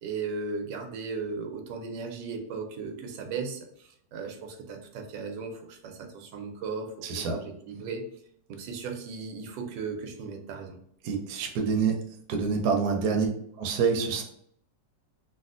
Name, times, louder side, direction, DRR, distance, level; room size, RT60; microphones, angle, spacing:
voice 1, 0.0-8.1 8.5-10.8 13.1-13.3, right 4 dB, 90° right, 4 dB, 1.3 m, -36 dB
voice 2, 7.0-7.4 11.0-12.0 12.3-13.3 13.6-14.2, right 5 dB, 70° right, 3 dB, 1.0 m, -26 dB
3.3 x 2.4 x 2.4 m, 0.69 s
omnidirectional pair, 1.9 m